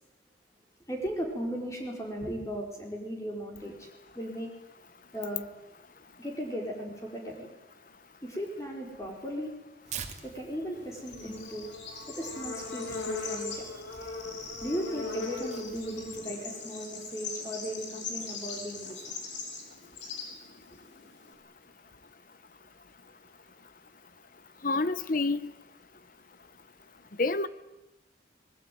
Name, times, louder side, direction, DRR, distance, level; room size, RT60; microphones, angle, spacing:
voice 1, 0.9-3.9 4.1-4.5 5.1-5.4 6.2-7.5 8.2-9.5 10.2-11.7 12.1-13.7 14.6-19.2, equal, 15° left, 0 dB, 4.5 m, -36 dB
Tearing, 9.9-16.4, right 7 dB, 40° right, 2.5 m, -48 dB
Bird / Insect, 10.7-21.3, left 4 dB, 75° left, 6.7 m, -39 dB
voice 2, 24.6-25.4 27.2-27.5, left 3 dB, 45° left, 15 dB, 1.0 m, -27 dB
25.0 x 21.0 x 9.4 m, 0.99 s
head